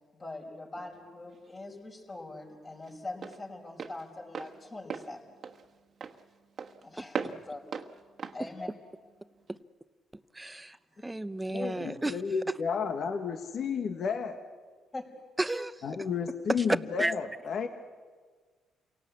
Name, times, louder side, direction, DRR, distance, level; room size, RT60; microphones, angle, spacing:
voice 1, 0.1-5.4 6.8-7.6 8.3-8.7 14.9-15.1, left 2 dB, 30° left, 0 dB, 5.4 m, -42 dB
Walk footsteps, 0.9-9.6, right 6 dB, 50° right, 1.4 m, -41 dB
voice 2, 10.3-10.8 11.0-12.2 12.5-12.6 15.4-15.8 16.6-16.7 17.0-17.1, right 2 dB, 10° right, 14 dB, 0.9 m, -33 dB
voice 3, 11.5-14.4 15.8-17.7, left 6 dB, 60° left, 6 dB, 1.6 m, -32 dB
28.0 x 17.5 x 8.5 m, 1.5 s
cardioid pair, 90°, 0 cm